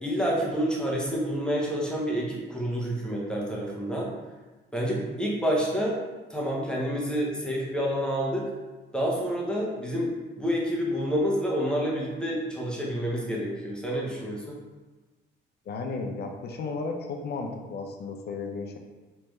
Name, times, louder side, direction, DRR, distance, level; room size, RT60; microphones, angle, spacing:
voice 1, 0.0-4.1 4.7-6.0 6.3-8.5 8.9-14.6, equal, 5° left, -4 dB, 0.9 m, -28 dB
voice 2, 15.7-18.8, left 4 dB, 55° left, 3 dB, 0.6 m, -34 dB
3.3 x 3.3 x 3.1 m, 1.2 s
cardioid pair, 90°, 20 cm